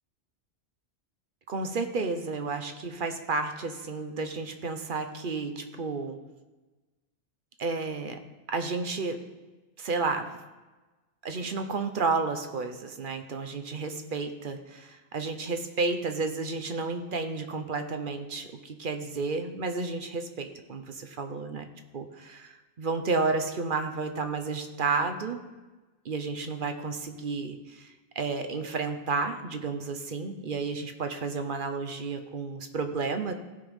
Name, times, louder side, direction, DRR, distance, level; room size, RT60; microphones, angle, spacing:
voice 1, 1.5-6.2 7.6-8.2 8.5-9.2 9.8-10.4 11.2-21.7 21.9-25.4 26.0-33.3, right 4 dB, 50° right, 7 dB, 0.8 m, -31 dB
15.5 x 5.5 x 3.5 m, 1.2 s
omnidirectional pair, 1.2 m